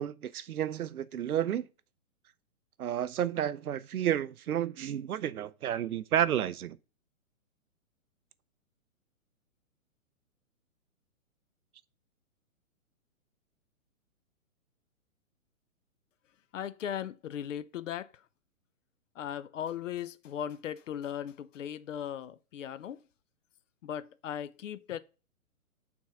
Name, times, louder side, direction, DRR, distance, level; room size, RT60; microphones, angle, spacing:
voice 1, 0.0-1.7 2.8-6.8, right 10 dB, 90° right, 0.6 m, -31 dB
voice 2, 16.5-18.2 19.2-23.0 23.8-25.0, left 9 dB, 60° left, 0.6 m, -38 dB
6.0 x 3.8 x 5.6 m
hypercardioid pair, 145°, 43 cm